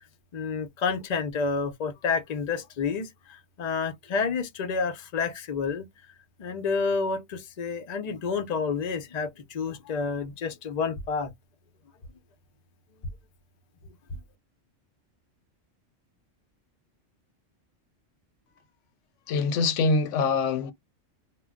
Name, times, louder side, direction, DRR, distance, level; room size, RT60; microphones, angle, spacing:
voice 1, 0.3-3.1 3.6-5.9 6.4-11.3, left 5 dB, 45° left, 0.5 m, -29 dB
voice 2, 19.3-20.7, left 4 dB, 75° left, 0.9 m, -24 dB
2.2 x 2.1 x 3.6 m
omnidirectional pair, 1.3 m